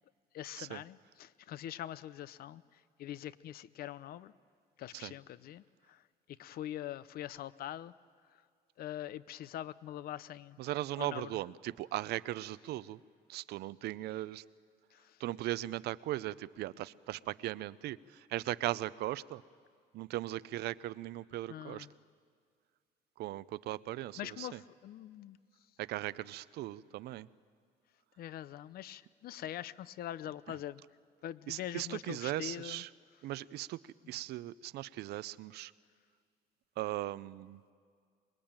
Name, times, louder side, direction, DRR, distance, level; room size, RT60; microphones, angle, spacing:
voice 1, 0.3-4.3 4.8-6.0 6.4-7.9 8.3-8.4 8.8-10.6 11.0-11.3 14.9-15.2 21.5-21.9 24.2-25.4 28.2-30.8 31.2-32.8, left 12 dB, 65° left, 17 dB, 0.7 m, -43 dB
voice 2, 10.6-13.0 13.3-14.4 15.2-19.4 19.9-21.9 23.2-24.6 25.8-27.3 31.5-32.9 33.2-33.8 34.1-35.7 36.8-37.6, right 15 dB, 75° right, 17 dB, 0.6 m, -38 dB
25.0 x 21.5 x 8.9 m, 2.1 s
cardioid pair, 110°, 17 cm